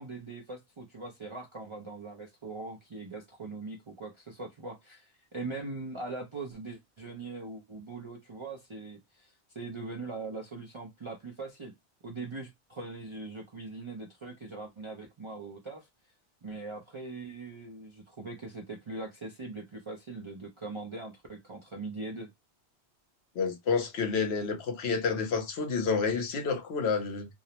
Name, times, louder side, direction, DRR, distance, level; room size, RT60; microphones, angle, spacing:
voice 1, 0.0-11.7 12.0-15.9 16.4-22.3, right 3 dB, 50° right, 0.3 m, -41 dB
voice 2, 23.4-27.3, left 5 dB, 70° left, 0.9 m, -29 dB
2.4 x 2.0 x 2.8 m
omnidirectional pair, 1.1 m